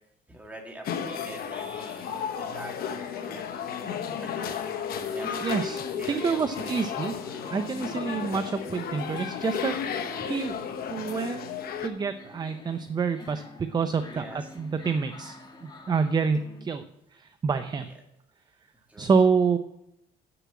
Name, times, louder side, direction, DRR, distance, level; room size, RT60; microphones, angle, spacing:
voice 1, 0.3-4.9 5.1-5.7 6.0-6.9 7.2-7.6 14.0-14.9 17.8-17.9 18.9-19.1, right 1 dB, 10° right, 0 dB, 2.3 m, -45 dB
sound 1, 0.8-11.9, left 7 dB, 65° left, 1.0 m, -33 dB
sound 2, 3.7-16.6, left 2 dB, 25° left, 1.6 m, -47 dB
voice 2, 5.4-7.1 7.5-10.5 10.9-11.5 11.8-16.8 17.1-17.9 19.0-19.6, right 5 dB, 25° right, 10 dB, 0.5 m, -27 dB
7.2 x 6.9 x 7.4 m, 0.82 s
cardioid pair, 110°, 17 cm